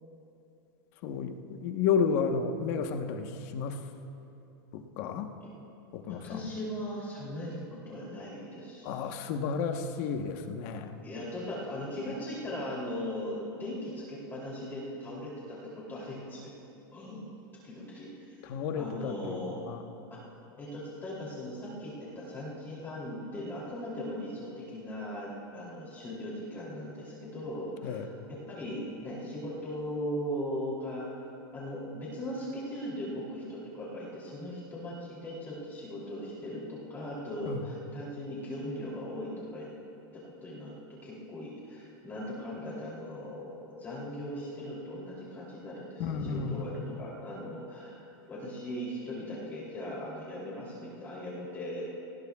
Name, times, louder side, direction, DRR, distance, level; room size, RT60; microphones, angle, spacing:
voice 1, 1.0-3.8 4.7-5.3 5.9-6.5 8.8-11.0 18.4-19.8 27.8-28.1 37.5-37.7 46.0-46.7, left 6 dB, 45° left, 5 dB, 1.1 m, -32 dB
voice 2, 6.0-9.0 11.0-16.4 16.9-17.3 17.6-18.4 18.8-19.6 20.1-20.2 20.6-31.2 31.5-39.7 40.1-40.7 41.0-51.8, left 1 dB, 15° left, -6 dB, 3.0 m, -39 dB
29.5 x 19.0 x 2.4 m, 2.8 s
supercardioid pair, 160°, 12 cm